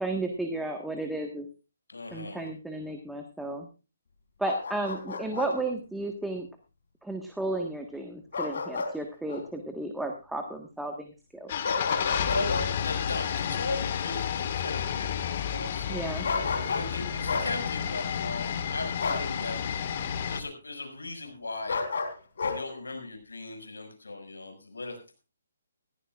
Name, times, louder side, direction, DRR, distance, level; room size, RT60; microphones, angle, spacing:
voice 1, 0.0-1.5 2.1-3.7 4.4-6.5 7.0-11.5 15.9-16.3, right 2 dB, 5° right, 3 dB, 1.6 m, -33 dB
voice 2, 1.9-2.5 12.3-12.6 12.8-19.6 20.3-21.8 22.5-25.2, left 3 dB, 90° left, 6 dB, 6.3 m, -38 dB
Bark, 4.4-5.5 8.3-8.9 9.3-9.4 11.6-12.7 16.2-16.9 17.3-17.5 19.0-19.3 21.7-22.6, left 4 dB, 65° left, 3.8 m, -31 dB
sound 1, 11.5-20.4, left 8 dB, 45° left, 1.9 m, -31 dB
18.5 x 16.0 x 2.5 m, 0.31 s
hypercardioid pair, 145°, 0 cm